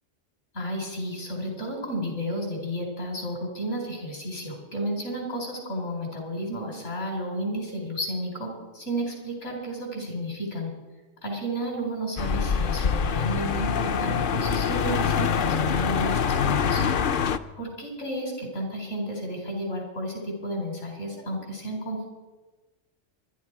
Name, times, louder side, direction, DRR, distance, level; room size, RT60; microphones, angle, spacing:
voice 1, 0.5-10.7 11.2-16.8 17.6-22.1, equal, 85° left, 0 dB, 4.8 m, -32 dB
sound 1, 12.2-17.4, left 7 dB, 55° left, 0.7 m, -25 dB
25.0 x 11.5 x 4.8 m, 1.2 s
omnidirectional pair, 1.2 m